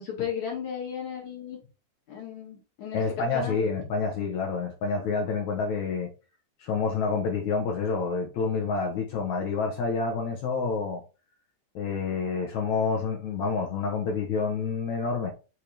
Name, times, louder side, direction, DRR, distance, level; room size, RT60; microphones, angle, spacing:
voice 1, 0.0-1.6 2.1-3.9, left 8 dB, 55° left, 2.6 m, -35 dB
voice 2, 2.9-6.1 6.6-11.0 11.8-15.3, left 4 dB, 70° left, 1.8 m, -28 dB
6.5 x 3.4 x 4.4 m
omnidirectional pair, 4.7 m